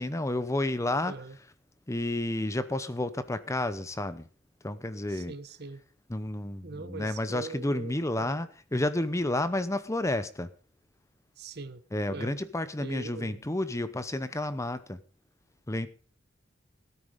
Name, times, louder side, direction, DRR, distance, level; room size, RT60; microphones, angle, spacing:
voice 1, 0.0-1.1 1.9-4.3 4.6-5.3 6.1-10.5 11.9-15.0 15.7-15.9, left 1 dB, 15° left, 0.7 m, -31 dB
voice 2, 1.1-1.4 5.1-5.9 6.6-8.4 11.4-11.8 12.1-12.4 12.8-13.5, right 3 dB, 55° right, 1.1 m, -42 dB
17.0 x 9.2 x 5.2 m
head